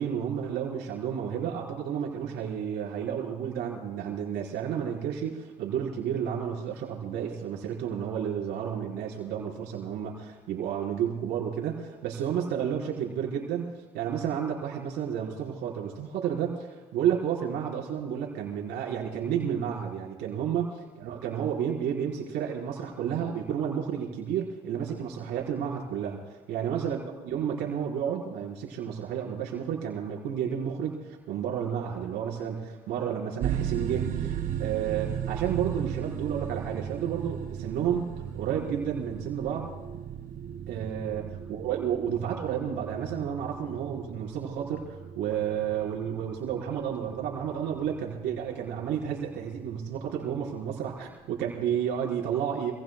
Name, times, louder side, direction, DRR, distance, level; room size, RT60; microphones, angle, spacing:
voice 1, 0.0-20.7 21.0-26.2 26.5-39.7 40.7-41.2 41.5-52.7, right 8 dB, 85° right, -2 dB, 4.1 m, -31 dB
sound 1, 33.4-52.0, right 9 dB, 60° right, 1.5 m, -37 dB
27.0 x 19.5 x 2.2 m, 1.2 s
cardioid pair, 110°, 17 cm